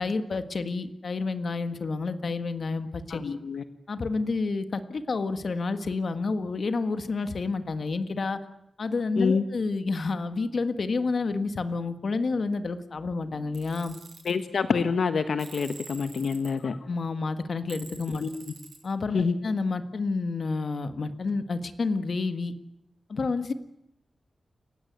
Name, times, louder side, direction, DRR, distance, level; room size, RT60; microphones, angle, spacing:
voice 1, 0.0-3.3 3.9-8.4 8.8-13.9 16.6-18.2 18.8-22.5 23.1-23.5, left 3 dB, 50° left, 9 dB, 1.6 m, -29 dB
voice 2, 3.1-3.6 9.2-9.4 14.2-16.7 18.2-18.3 19.1-19.4, left 5 dB, 70° left, 9 dB, 1.3 m, -26 dB
Tools, 13.5-14.3 15.4-16.5 17.7-18.8, right 4 dB, 85° right, 7.7 m, -46 dB
29.5 x 16.5 x 9.5 m, 0.81 s
wide cardioid pair, 170°, 0 cm